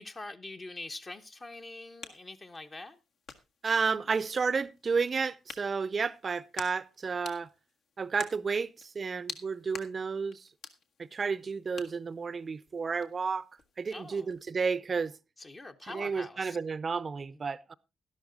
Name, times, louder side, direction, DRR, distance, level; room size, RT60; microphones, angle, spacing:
voice 1, 0.0-3.0 13.9-14.3 15.4-16.6 17.3-17.4, left 2 dB, 30° left, 1.0 m, -44 dB
sound 1, 1.4-14.6, left 5 dB, 65° left, 1.7 m, -50 dB
voice 2, 3.6-7.5 8.0-10.4 11.0-13.5 13.8-15.1 15.9-17.7, right 5 dB, 35° right, 0.6 m, -31 dB
12.0 x 12.0 x 3.9 m
cardioid pair, 90°, 0 cm